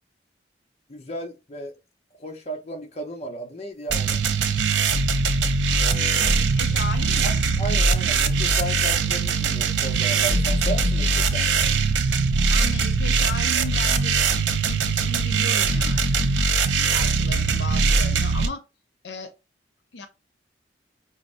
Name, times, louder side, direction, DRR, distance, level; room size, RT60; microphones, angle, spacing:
voice 1, 0.9-1.8 2.2-4.2 5.8-6.4 7.2-7.3 7.6-11.6, right 1 dB, 35° left, 0.6 m, -34 dB
sound 1, 3.9-18.5, right 4 dB, 90° right, 0.5 m, -21 dB
voice 2, 6.2-7.5 12.5-14.2 14.6-16.3 16.8-18.6 19.0-19.3 19.9-20.1, left 3 dB, 80° left, 0.6 m, -36 dB
4.8 x 2.0 x 2.5 m
head